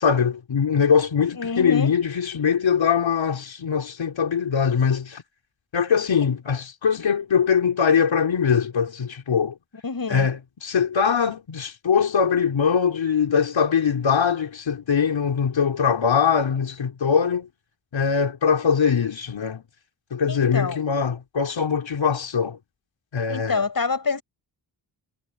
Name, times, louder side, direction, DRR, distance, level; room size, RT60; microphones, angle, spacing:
voice 1, 0.0-5.2 5.7-9.5 10.1-17.5 17.9-19.6 20.1-22.6 23.1-23.6, left 6 dB, 80° left, 3.8 m, -22 dB
voice 2, 1.4-1.9 9.8-10.3 20.3-20.8 23.3-24.2, left 4 dB, 50° left, 5.9 m, -26 dB
wide cardioid pair, 85°, 46 cm